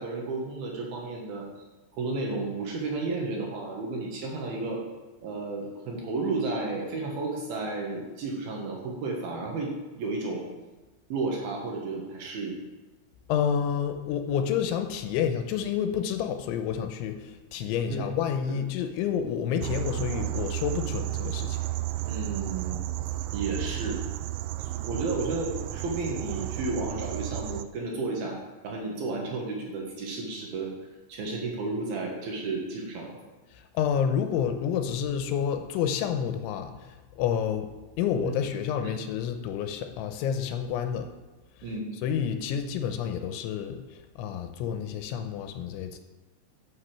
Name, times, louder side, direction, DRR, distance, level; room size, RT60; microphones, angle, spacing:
voice 1, 0.0-1.5 1.9-4.8 5.2-9.7 10.0-10.5 11.1-12.6 17.9-18.1 18.5-18.6 22.0-22.9 23.3-24.0 24.7-28.4 28.6-30.7 31.1-33.2 38.2-38.3 38.8-38.9 41.6-41.9, right 3 dB, 60° right, -1 dB, 3.0 m, -32 dB
voice 2, 13.3-21.6 33.5-41.1 42.0-46.0, left 8 dB, 85° left, 7 dB, 3.1 m, -29 dB
sound 1, 19.6-27.6, right 16 dB, 85° right, 2.8 m, -33 dB
9.8 x 6.7 x 7.5 m, 1.2 s
omnidirectional pair, 5.4 m